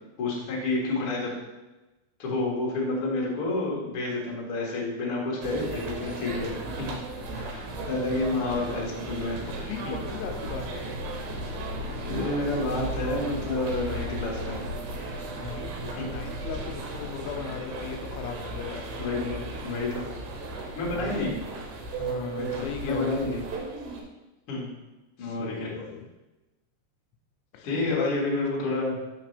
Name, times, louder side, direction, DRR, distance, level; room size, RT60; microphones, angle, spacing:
voice 1, 0.2-1.3 2.2-6.9 7.4-9.4 9.8-9.9 12.1-14.6 16.0-16.2 19.0-19.3 19.6-20.1 20.7-21.3 22.3-23.4 24.5-24.7 25.2-25.7 27.6-29.0, left 2 dB, 60° left, -4 dB, 1.4 m, -29 dB
sound 1, 5.4-24.0, right 2 dB, 75° right, 2.6 m, -36 dB
voice 2, 9.5-11.0 15.3-18.9 20.9-21.3 22.0-23.5 25.2-26.1 27.5-28.1, left 7 dB, 85° left, 6 dB, 2.9 m, -37 dB
sound 2, 9.9-15.9, left 2 dB, 90° right, 3.1 m, -39 dB
6.8 x 5.7 x 3.3 m, 1.1 s
omnidirectional pair, 5.5 m